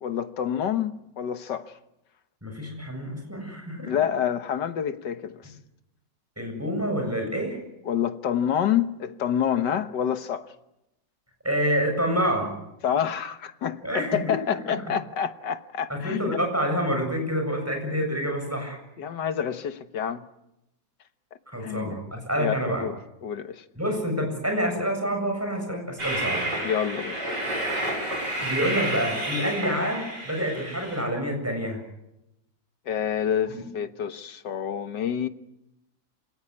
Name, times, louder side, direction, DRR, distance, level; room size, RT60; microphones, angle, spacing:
voice 1, 0.0-1.7 3.8-5.5 7.9-10.5 12.8-16.4 19.0-20.3 21.6-22.0 22.4-22.5 22.8-22.9 23.2-23.6 26.6-27.2 32.9-35.3, left 9 dB, 70° left, 1.8 m, -28 dB
voice 2, 2.4-3.9 6.4-7.6 11.4-12.5 13.8-14.3 15.9-18.8 21.5-22.8 23.8-26.6 28.4-31.8, equal, 5° right, 7.6 m, -27 dB
Train, 26.0-31.0, right 1 dB, 65° right, 8.2 m, -30 dB
27.5 x 18.0 x 9.7 m
omnidirectional pair, 2.0 m